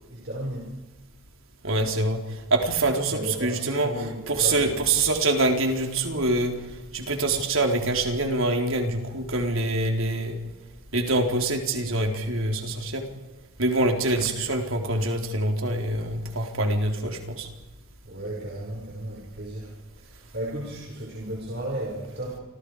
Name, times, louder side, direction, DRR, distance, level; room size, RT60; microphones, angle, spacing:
voice 1, 0.1-0.7 3.1-4.8 18.0-22.4, right 1 dB, 50° right, -2 dB, 5.7 m, -34 dB
voice 2, 1.6-6.6 6.9-10.4 10.9-13.0 13.6-17.5, right 2 dB, 70° right, 3 dB, 4.0 m, -25 dB
29.5 x 27.0 x 5.0 m, 1.1 s
head